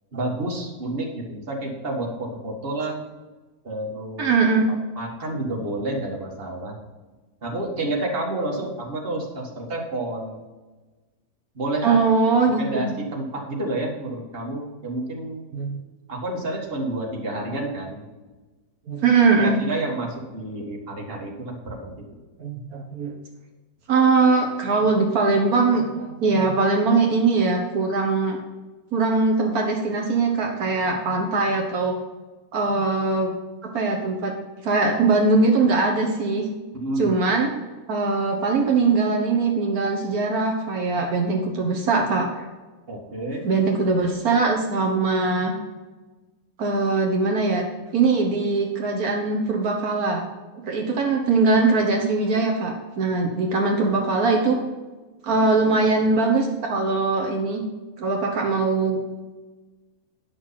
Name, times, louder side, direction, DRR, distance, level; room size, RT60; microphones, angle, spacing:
voice 1, 0.1-3.0 3.6-4.3 4.7-6.8 7.4-10.4 11.5-12.0 12.5-15.4 16.1-18.0 19.4-22.0 36.7-37.2 42.9-43.4, right 2 dB, 40° right, -2 dB, 2.1 m, -29 dB
voice 2, 4.2-4.7 11.8-12.9 15.5-15.7 18.9-19.6 22.4-23.1 23.9-28.4 28.9-32.0 32.5-33.3 33.7-34.3 34.6-36.5 37.0-37.5 37.9-42.4 43.4-45.5 46.6-47.6 47.9-50.3 50.7-54.6 55.2-57.6 58.0-59.2, right 3 dB, 75° right, 1 dB, 1.6 m, -21 dB
10.0 x 6.4 x 5.8 m, 1.2 s
omnidirectional pair, 1.6 m